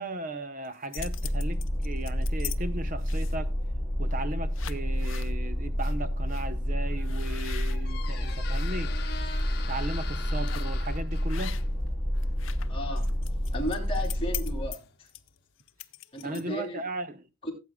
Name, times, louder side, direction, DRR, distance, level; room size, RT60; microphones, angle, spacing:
voice 1, 0.0-3.5 4.0-8.9 9.7-11.7 16.2-17.2, right 2 dB, 40° right, 0.8 m, -36 dB
sound 1, 0.6-2.6 3.0-3.5 4.1-4.2 4.5-5.3 5.8-5.9 6.3-6.5 7.0-8.7 9.2-9.4 10.5-10.8 11.3-11.9 12.2-16.6, left 15 dB, 65° left, 0.5 m, -42 dB
sound 2, 1.0-14.7, equal, ahead, 5.3 m, -29 dB
Squeak, 6.6-15.4, left 6 dB, 50° left, 1.2 m, -45 dB
voice 2, 12.7-13.2 13.5-15.1 16.1-16.8 17.4-17.5, equal, 25° left, 3.1 m, -35 dB
17.0 x 8.4 x 2.3 m
head